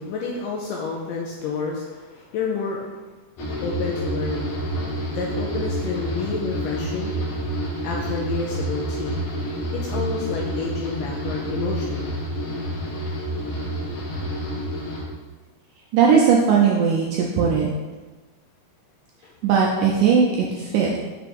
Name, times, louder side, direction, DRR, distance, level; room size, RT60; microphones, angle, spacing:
voice 1, 0.0-3.0 3.6-4.5 5.1-7.1 7.8-9.3 9.7-12.2 19.2-19.3, left 5 dB, 80° left, -1 dB, 1.9 m, -29 dB
sound 1, 3.4-15.0, right 1 dB, 65° left, 1.7 m, -28 dB
voice 2, 15.9-17.7 19.4-21.0, right 6 dB, 80° right, -3 dB, 1.9 m, -18 dB
6.1 x 3.3 x 5.2 m, 1.3 s
omnidirectional pair, 4.4 m